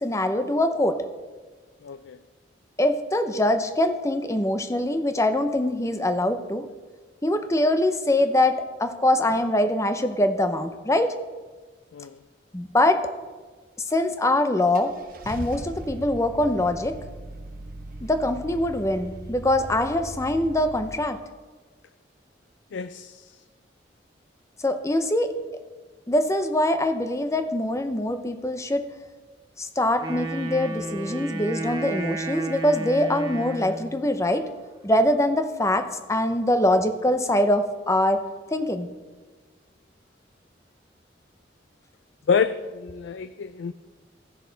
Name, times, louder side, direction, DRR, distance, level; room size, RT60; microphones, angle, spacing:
voice 1, 0.0-1.1 2.8-6.7 7.2-11.2 12.5-13.1 13.9-14.9 15.3-17.0 18.0-21.2 24.6-25.3 26.1-28.8 29.6-34.5 34.8-38.2 38.5-38.9, left 1 dB, 15° left, 9 dB, 0.6 m, -23 dB
voice 2, 1.8-2.2 11.9-12.2 22.7-23.4 42.3-43.7, left 6 dB, 75° left, 12 dB, 0.4 m, -27 dB
Car / Engine starting, 14.0-14.1 14.7-20.9, right 1 dB, 50° right, 0.9 m, -39 dB
Wind instrument woodwind instrument, 30.0-34.0, right 2 dB, 25° right, 1.2 m, -32 dB
15.5 x 6.4 x 4.0 m, 1.3 s
head